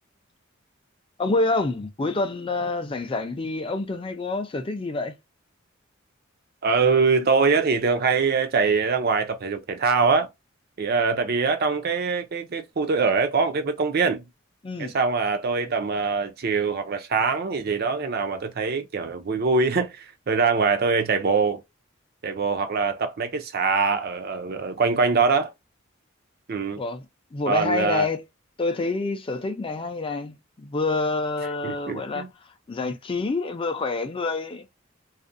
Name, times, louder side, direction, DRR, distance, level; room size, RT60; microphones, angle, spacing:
voice 1, 1.2-5.2 14.6-14.9 26.8-27.1 27.3-28.2 28.6-32.3 32.7-34.7, left 3 dB, 25° left, 0.4 m, -27 dB
voice 2, 6.6-10.3 10.8-14.2 14.8-21.6 22.2-25.5 26.5-26.8 27.5-28.1 31.6-32.3, right 4 dB, 50° right, 0.5 m, -23 dB
2.4 x 2.0 x 2.5 m
head